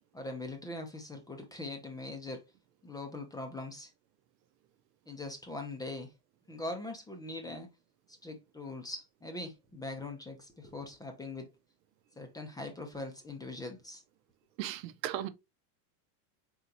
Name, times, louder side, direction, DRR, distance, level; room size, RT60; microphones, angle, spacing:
voice 1, 0.1-2.4 2.8-3.9 5.1-6.1 6.5-7.7 8.2-11.5 12.2-14.0, left 2 dB, 10° left, 0.5 m, -41 dB
voice 2, 14.6-15.3, right 12 dB, 80° right, 0.8 m, -36 dB
4.4 x 3.9 x 2.7 m
supercardioid pair, 135°, 49 cm